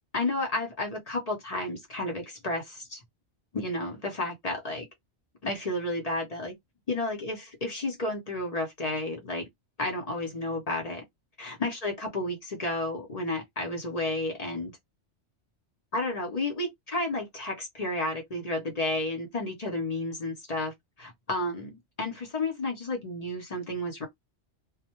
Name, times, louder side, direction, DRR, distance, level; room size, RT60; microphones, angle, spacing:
voice 1, 0.1-3.0 3.5-4.9 5.4-6.6 6.9-9.5 9.8-11.0 11.4-14.7 15.9-24.1, left 2 dB, 40° left, 0.7 m, -32 dB
2.1 x 2.1 x 2.9 m
omnidirectional pair, 1.1 m